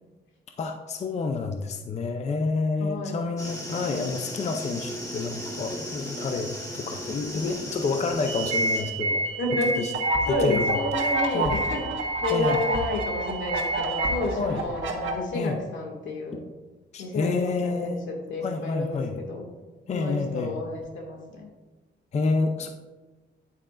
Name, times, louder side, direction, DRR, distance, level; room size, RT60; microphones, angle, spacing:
voice 1, 0.6-9.3 9.8-9.9 10.3-10.8 11.3-11.6 12.3-12.6 14.3-14.6 15.3-15.6 16.9-18.0 18.4-19.2 19.9-20.6 22.1-22.7, left 4 dB, 35° left, 5 dB, 0.5 m, -28 dB
voice 2, 2.8-3.2 9.4-16.4 17.0-19.5 19.9-21.5, left 1 dB, 85° left, 0 dB, 2.1 m, -30 dB
sound 1, 3.4-8.9, equal, 15° left, 1.5 m, -36 dB
sound 2, 8.3-14.2, right 2 dB, 30° right, 2.5 m, -29 dB
sound 3, 9.9-15.1, right 2 dB, 90° right, 1.4 m, -30 dB
9.9 x 8.6 x 2.5 m, 1.2 s
wide cardioid pair, 165°, 19 cm